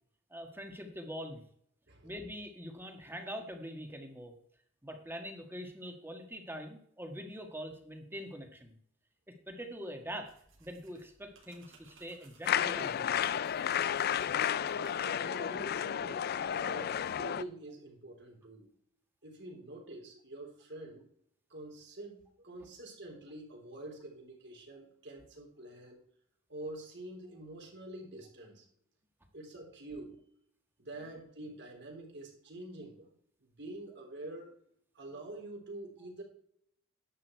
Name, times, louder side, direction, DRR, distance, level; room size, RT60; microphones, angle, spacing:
voice 1, 0.3-1.4 2.0-4.4 4.8-8.8 9.5-10.3 10.6-13.3 15.5-15.6, equal, 10° right, 4 dB, 1.6 m, -44 dB
voice 2, 1.9-2.2 14.7-18.7 19.2-21.1 21.5-26.0 26.5-28.7 29.3-30.2 30.8-33.1 33.4-34.6 35.0-36.2, right 2 dB, 60° right, 0 dB, 3.7 m, -47 dB
sound 1, 10.2-15.3, right 4 dB, 80° right, 3.5 m, -63 dB
sound 2, 12.5-17.4, left 9 dB, 50° left, 0.4 m, -32 dB
11.0 x 8.7 x 4.6 m, 0.64 s
head